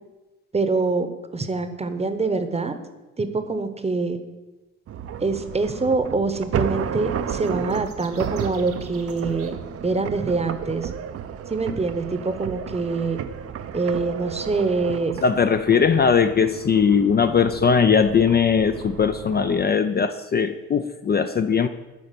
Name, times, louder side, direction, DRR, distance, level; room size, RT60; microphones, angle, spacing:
voice 1, 0.5-1.1 1.3-2.7 3.2-4.2 5.2-9.5 9.8-10.9 11.5-13.2 13.7-15.1, right 3 dB, 20° right, 9 dB, 0.9 m, -25 dB
sound 1, 4.9-19.7, right 8 dB, 50° right, 0.6 m, -33 dB
sound 2, 7.4-9.5, right 7 dB, 75° right, 1.3 m, -48 dB
voice 2, 15.2-21.7, left 6 dB, 35° left, 9 dB, 0.4 m, -19 dB
9.9 x 4.3 x 6.8 m, 1.1 s
cardioid pair, 90°, 30 cm